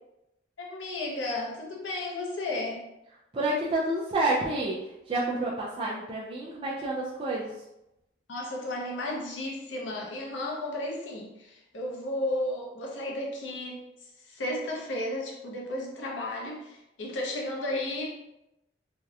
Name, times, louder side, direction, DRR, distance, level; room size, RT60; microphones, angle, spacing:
voice 1, 0.6-2.9 8.3-13.8 14.2-18.3, left 1 dB, 80° left, -1 dB, 0.6 m, -33 dB
voice 2, 3.3-7.6, right 2 dB, 30° right, -6 dB, 0.3 m, -29 dB
2.7 x 2.1 x 2.3 m, 0.90 s
head